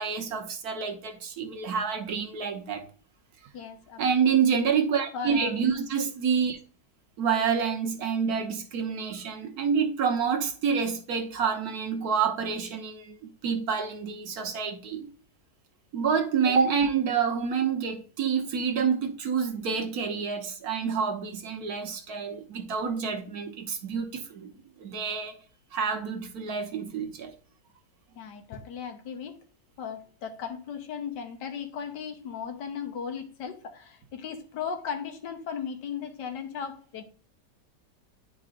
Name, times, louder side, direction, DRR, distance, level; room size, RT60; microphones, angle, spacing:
voice 1, 0.0-2.9 4.0-6.6 7.2-15.1 15.9-24.5 24.8-25.4 25.7-27.3 30.2-30.3, right 6 dB, 65° right, 1.3 m, -28 dB
voice 2, 3.5-4.4 5.1-5.6 28.2-29.4 29.8-37.0, left 7 dB, 80° left, 1.5 m, -37 dB
10.5 x 4.8 x 2.5 m
omnidirectional pair, 1.9 m